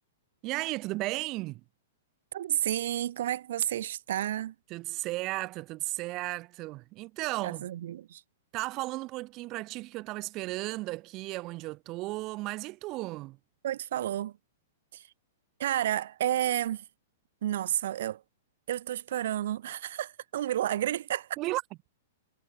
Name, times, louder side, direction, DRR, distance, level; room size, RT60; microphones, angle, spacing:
voice 1, 0.4-1.6 4.7-7.6 8.5-13.4 21.4-21.6, right 20 dB, 25° right, 2.0 m, -34 dB
voice 2, 2.3-4.5 7.4-8.2 13.6-14.3 14.9-15.0 15.6-16.8 17.4-18.2 18.7-21.3, right 12 dB, 50° right, 4.1 m, -31 dB
hypercardioid pair, 175°, 0 cm